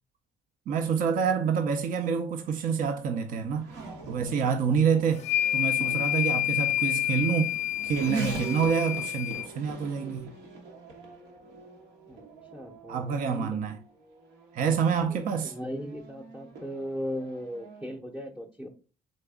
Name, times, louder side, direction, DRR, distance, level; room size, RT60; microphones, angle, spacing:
voice 1, 0.7-3.7 4.1-5.2 5.5-7.5 7.8-10.3 12.9-13.8 14.5-15.5, right 6 dB, 55° right, 0.5 m, -27 dB
Race car auto racing / Accelerating revving vroom, 1.9-18.0, right 3 dB, 85° right, 1.1 m, -43 dB
sound 1, 5.2-9.5, left 13 dB, 40° left, 0.5 m, -28 dB
voice 2, 12.5-13.6 14.6-15.0 15.2-18.7, equal, 5° right, 0.7 m, -38 dB
4.0 x 3.4 x 3.5 m
cardioid pair, 110°, 17 cm